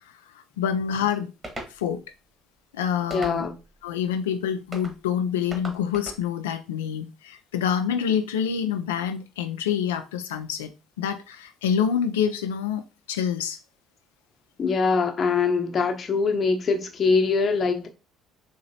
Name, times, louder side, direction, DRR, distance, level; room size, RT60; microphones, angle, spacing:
voice 1, 0.6-1.3 1.8-2.0 2.7-3.5 3.8-13.6, left 8 dB, 85° left, 0.3 m, -27 dB
sound 1, 1.4-1.8 3.1-3.7 4.7-5.0 5.5-6.2, right 1 dB, 25° right, 1.3 m, -38 dB
voice 2, 3.1-3.6 14.6-17.9, left 4 dB, 40° left, 0.8 m, -23 dB
3.9 x 2.9 x 2.7 m
hypercardioid pair, 60°, 0 cm